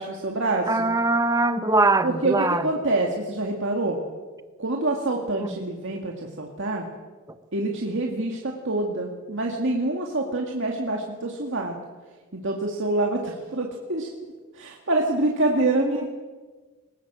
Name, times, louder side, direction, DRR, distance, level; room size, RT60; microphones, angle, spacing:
voice 1, 0.0-0.9 2.0-2.4 2.6-4.0 4.6-6.9 7.5-11.7 12.3-14.1 14.5-16.1, right 2 dB, 55° right, 1 dB, 2.2 m, -26 dB
voice 2, 0.7-2.7 5.4-5.6 15.8-16.1, right 2 dB, 15° right, 10 dB, 1.1 m, -22 dB
22.5 x 20.0 x 7.6 m, 1.4 s
head